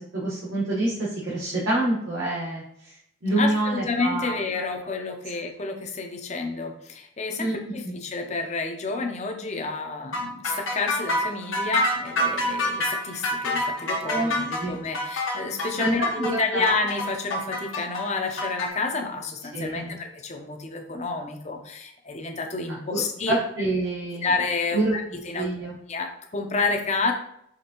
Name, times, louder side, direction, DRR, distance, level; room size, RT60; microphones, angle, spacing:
voice 1, 0.0-4.9 7.4-7.6 7.8-7.9 14.0-14.3 14.6-14.8 15.8-16.6 19.5-20.0 22.9-24.3 24.7-25.0 25.4-25.7, right 2 dB, 80° right, -8 dB, 1.3 m, -27 dB
voice 2, 3.4-7.5 7.7-23.3 24.2-25.5 25.9-27.1, left 3 dB, 35° left, 4 dB, 0.6 m, -29 dB
sound 1, 10.1-18.7, left 1 dB, 75° left, 1.0 m, -27 dB
5.0 x 3.4 x 2.9 m, 0.75 s
head